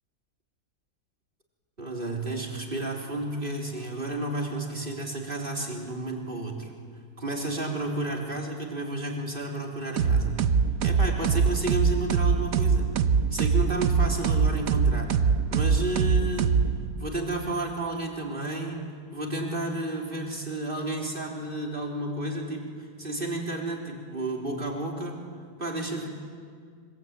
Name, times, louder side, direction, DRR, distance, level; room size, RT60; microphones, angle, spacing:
voice 1, 1.8-6.7 7.2-10.4 10.8-12.9 13.3-15.2 15.5-16.6 17.0-18.9 19.1-25.3 25.6-26.1, right 2 dB, 35° right, 0 dB, 4.1 m, -32 dB
sound 1, 10.0-17.1, right 6 dB, 65° right, 1.4 m, -23 dB
25.5 x 24.5 x 9.1 m, 2.1 s
omnidirectional pair, 1.6 m